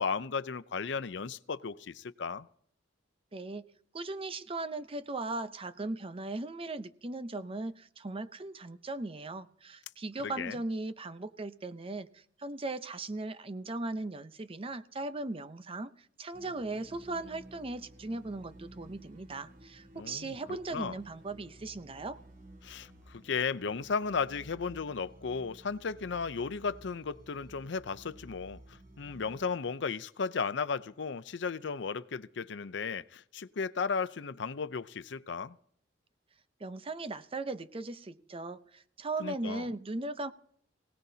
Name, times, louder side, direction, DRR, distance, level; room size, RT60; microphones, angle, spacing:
voice 1, 0.0-2.5 10.2-10.6 19.9-21.0 22.6-35.6 39.2-39.7, left 5 dB, 70° left, 0.6 m, -35 dB
voice 2, 3.3-3.7 3.9-15.9 16.2-22.2 36.6-40.3, right 2 dB, 30° right, 0.7 m, -38 dB
sound 1, 16.3-29.5, right 1 dB, 50° right, 2.1 m, -54 dB
24.0 x 17.5 x 2.8 m
head